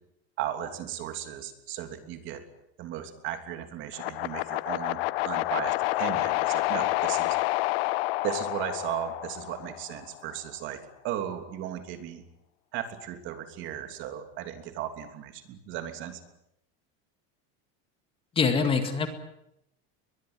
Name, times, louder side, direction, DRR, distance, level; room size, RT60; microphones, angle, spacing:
voice 1, 0.4-2.4 2.8-7.4 8.2-12.2 12.7-16.2, right 10 dB, 40° right, 8 dB, 3.1 m, -36 dB
sound 1, 3.9-10.1, left 19 dB, 85° left, 1.0 m, -29 dB
voice 2, 18.4-19.1, left 5 dB, 20° left, 7 dB, 2.1 m, -24 dB
22.5 x 21.5 x 9.7 m, 0.79 s
cardioid pair, 175°, 29 cm